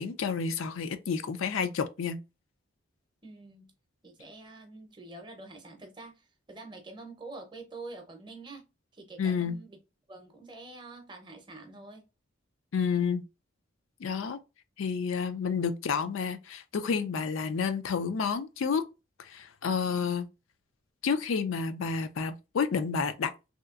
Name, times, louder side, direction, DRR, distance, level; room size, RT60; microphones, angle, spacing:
voice 1, 0.0-2.2 9.2-9.6 12.7-13.2 14.0-14.4 14.8-18.8 19.2-20.3 21.0-23.3, left 6 dB, 75° left, 0.4 m, -30 dB
voice 2, 3.2-3.7 4.0-8.7 8.9-9.8 10.1-12.1, right 3 dB, 20° right, 0.6 m, -46 dB
3.2 x 2.8 x 2.4 m
head